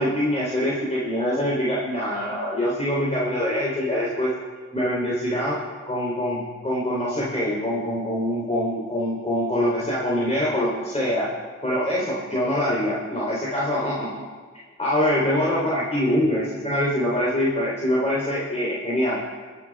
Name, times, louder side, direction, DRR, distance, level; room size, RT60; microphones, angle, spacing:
voice 1, 0.0-4.3 4.7-5.6 5.9-11.3 11.6-14.3 14.8-19.2, equal, 20° left, -6 dB, 3.7 m, -24 dB
23.5 x 8.6 x 3.6 m, 1.5 s
cardioid pair, 45°, 30 cm